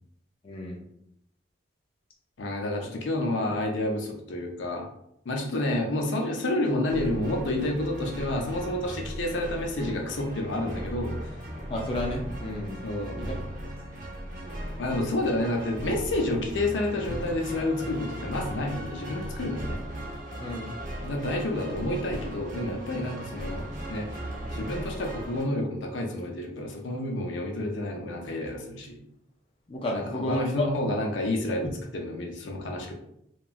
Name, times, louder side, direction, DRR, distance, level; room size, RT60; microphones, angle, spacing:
voice 1, 0.4-0.8 11.7-12.8 13.2-13.3 20.4-20.7 29.7-30.7, left 1 dB, 30° left, -1 dB, 0.4 m, -31 dB
voice 2, 2.4-4.9 5.3-11.1 12.8-13.2 14.8-19.8 21.0-24.1 24.5-29.0 29.9-32.9, left 1 dB, 80° left, 1 dB, 0.5 m, -29 dB
sound 1, 6.8-25.4, equal, 45° right, 0.7 m, -37 dB
2.9 x 2.3 x 2.4 m, 0.76 s
head